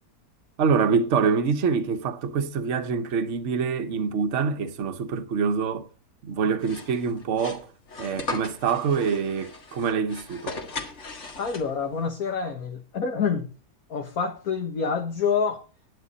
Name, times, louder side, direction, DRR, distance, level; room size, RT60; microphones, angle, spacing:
voice 1, 0.6-5.9 6.2-7.7 8.0-10.6, right 5 dB, 50° right, 1.2 m, -25 dB
sound 1, 6.6-12.0, left 3 dB, 45° left, 2.1 m, -38 dB
voice 2, 11.4-13.5 13.9-15.6, left 6 dB, 60° left, 1.8 m, -27 dB
11.0 x 10.5 x 4.1 m
omnidirectional pair, 1.8 m